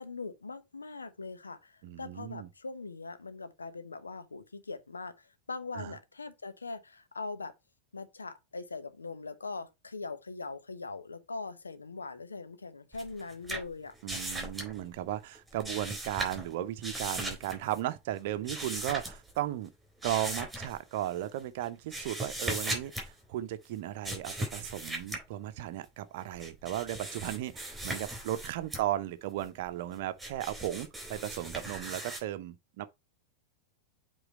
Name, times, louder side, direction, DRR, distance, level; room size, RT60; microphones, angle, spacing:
voice 1, 0.0-7.5 7.9-13.9, left 3 dB, 75° left, 1.0 m, -41 dB
voice 2, 1.8-2.5 5.7-5.9 14.0-19.7 20.0-32.9, right 13 dB, 50° right, 0.7 m, -36 dB
sound 1, 12.9-14.8 15.3-16.5 16.8-17.8 18.3-19.4 20.0-21.1 21.6-23.1 24.0-25.2 26.2-28.8 29.4-32.2, right 1 dB, 5° right, 3.9 m, -38 dB
8.0 x 3.8 x 4.5 m
figure-of-eight pair, 90°, 0 cm